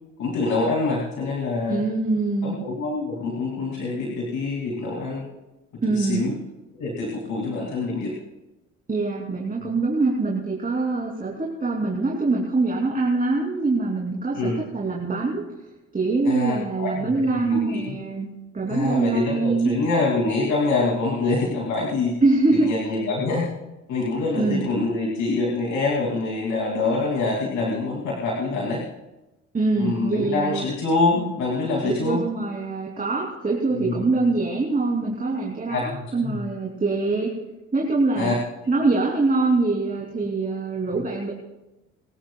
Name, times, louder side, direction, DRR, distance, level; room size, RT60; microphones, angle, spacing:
voice 1, 0.2-1.8 2.4-5.3 6.0-6.3 6.8-8.1 14.3-14.6 16.3-18.0 18.7-22.1 22.6-23.5 23.9-28.8 29.8-32.2 33.9-34.0 35.7-36.3 38.2-38.3, left 3 dB, 75° left, -3 dB, 2.8 m, -25 dB
voice 2, 1.7-2.6 5.8-6.3 8.9-15.4 15.9-19.7 22.2-22.7 24.3-24.7 29.5-30.6 31.8-37.3 37.7-38.3 38.7-41.3, right 3 dB, 30° right, -4 dB, 3.2 m, -24 dB
24.5 x 14.5 x 2.4 m, 0.99 s
cardioid pair, 90°, 30 cm